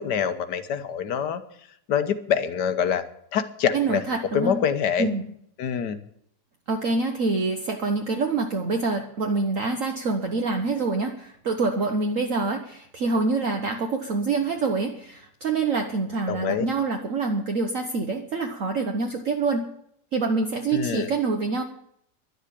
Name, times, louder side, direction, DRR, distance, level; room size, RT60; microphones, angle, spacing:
voice 1, 0.0-1.4 1.9-3.0 3.3-4.0 4.3-5.1 5.6-6.0 16.3-16.6 20.7-21.1, left 8 dB, 80° left, 10 dB, 1.7 m, -25 dB
voice 2, 3.7-4.6 5.0-5.3 6.7-19.7 20.1-21.6, right 3 dB, 55° right, 4 dB, 1.4 m, -26 dB
11.5 x 11.0 x 8.4 m, 0.71 s
omnidirectional pair, 1.8 m